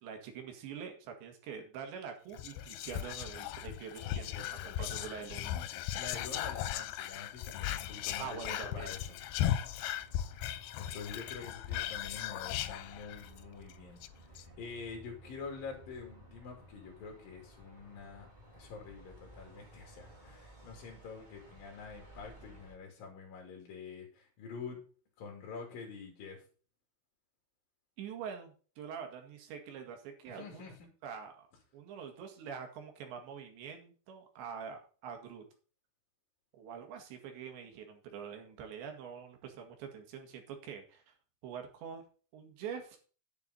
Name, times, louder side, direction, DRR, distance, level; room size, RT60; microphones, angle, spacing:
voice 1, 0.0-5.5 8.2-8.9 28.0-30.7 31.0-31.5 31.7-35.4 36.5-41.1 41.4-42.0 42.3-43.0, right 7 dB, 75° right, 4 dB, 4.1 m, -45 dB
Whispering, 2.3-13.4 13.7-13.8 14.0-14.4, left 12 dB, 85° left, 2.2 m, -37 dB
voice 2, 4.0-5.1 5.8-9.1 9.4-9.8 10.8-18.3 18.5-24.8 25.2-26.4 30.3-30.9, left 5 dB, 55° left, 1 dB, 4.1 m, -47 dB
sound 1, 7.5-22.8, right 1 dB, 40° right, 0.6 m, -57 dB
10.5 x 8.9 x 4.1 m, 0.38 s
omnidirectional pair, 5.2 m